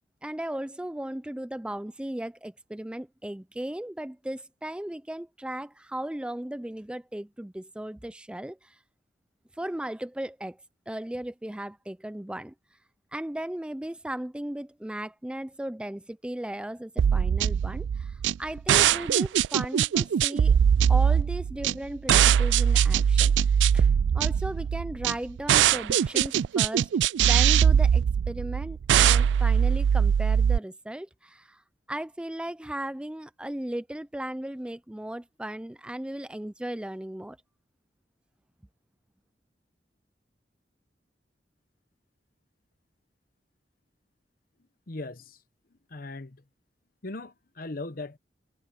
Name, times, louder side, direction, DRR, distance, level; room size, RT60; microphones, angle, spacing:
voice 1, 0.2-8.8 9.5-10.6 10.9-12.5 13.1-20.6 20.9-26.9 27.3-31.6 31.9-37.4, right 1 dB, 5° right, 0.4 m, -36 dB
sound 1, 17.0-30.6, right 8 dB, 85° right, 0.3 m, -22 dB
voice 2, 44.9-45.4 45.9-46.4 47.0-48.2, left 2 dB, 55° left, 1.0 m, -38 dB
head